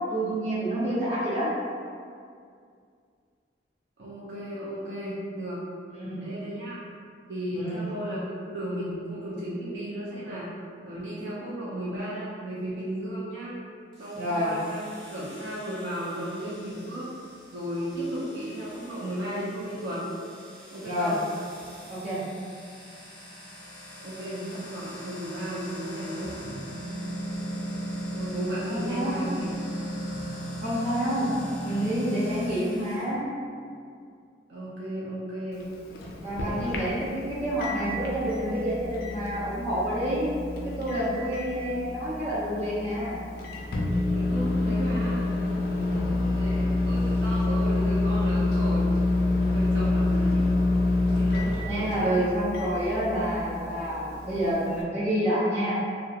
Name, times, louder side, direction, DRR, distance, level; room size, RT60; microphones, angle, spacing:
voice 1, 0.1-1.5 5.9-6.2 7.5-7.8 14.1-14.5 20.8-21.1 21.9-22.2 28.7-29.2 30.6-31.3 31.6-33.2 36.2-40.3 40.6-43.2 45.7-46.0 51.7-55.8, equal, 40° right, -11 dB, 0.9 m, -28 dB
voice 2, 4.0-5.6 6.2-6.8 7.3-10.5 10.8-13.6 14.0-14.8 15.1-17.1 17.5-20.0 20.7-21.2 24.0-26.4 28.1-29.5 34.5-35.6 36.4-36.8 44.1-45.3 46.0-48.9 49.3-50.5 51.1-52.2, right 1 dB, 80° right, -8 dB, 0.5 m, -34 dB
sound 1, 13.9-33.0, right 1 dB, 5° left, 0.6 m, -38 dB
Microwave oven, 35.5-54.8, left 2 dB, 60° left, 0.3 m, -28 dB
2.3 x 2.0 x 2.7 m, 2.3 s
head